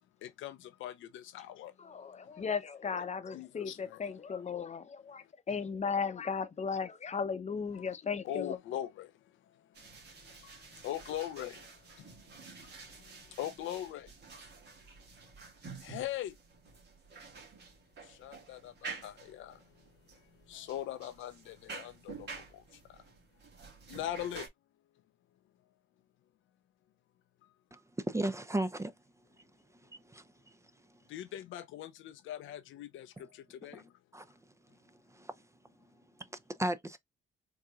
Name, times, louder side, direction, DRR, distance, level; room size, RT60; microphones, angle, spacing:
voice 1, 0.2-1.7 3.3-4.0 7.7-8.0 8.2-9.1 10.4-10.5 10.8-11.6 13.4-14.1 15.8-16.3 18.2-19.5 20.5-22.3 23.9-24.5 31.1-33.8, left 12 dB, 80° left, 0.6 m, -40 dB
voice 2, 1.8-8.6, left 5 dB, 35° left, 0.7 m, -36 dB
sound 1, 9.7-24.5, right 4 dB, 60° right, 1.8 m, -50 dB
voice 3, 27.7-28.9 30.1-30.2 34.1-34.3 35.2-35.3 36.6-37.0, right 1 dB, 15° right, 0.5 m, -34 dB
4.6 x 2.9 x 2.4 m
cardioid pair, 90°, 20 cm